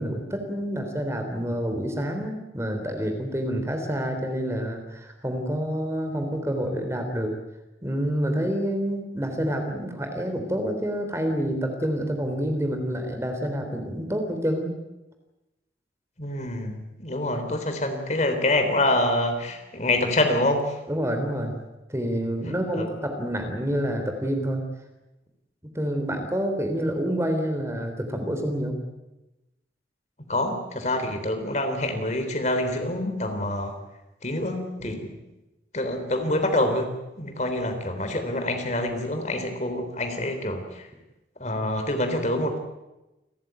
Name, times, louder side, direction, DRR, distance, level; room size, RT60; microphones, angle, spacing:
voice 1, 0.0-7.3 7.8-14.7 20.9-21.6 21.9-24.6 25.8-28.8 34.8-34.9, equal, 15° right, 5 dB, 3.5 m, -28 dB
voice 2, 16.2-20.8 22.4-22.9 30.3-33.7 34.2-35.1 35.7-40.9 41.4-42.6, left 1 dB, 40° left, 6 dB, 3.7 m, -26 dB
29.5 x 14.5 x 9.4 m, 1.0 s
head